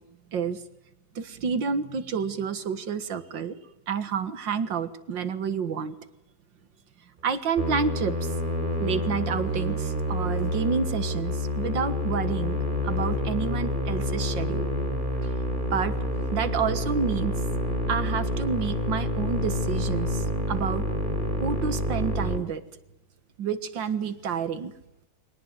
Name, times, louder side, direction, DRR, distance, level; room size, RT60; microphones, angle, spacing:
voice 1, 0.3-0.6 1.2-3.6 3.9-5.9 7.2-8.3 8.8-12.6 12.8-14.7 15.2-15.3 15.7-16.0 16.3-17.4 17.9-20.9 21.4-22.6 23.4-24.7, right 6 dB, 80° right, 12 dB, 2.3 m, -29 dB
Musical instrument, 7.6-22.4, left 1 dB, 25° right, 3.9 m, -28 dB
24.0 x 19.0 x 9.4 m, 0.87 s
omnidirectional pair, 2.0 m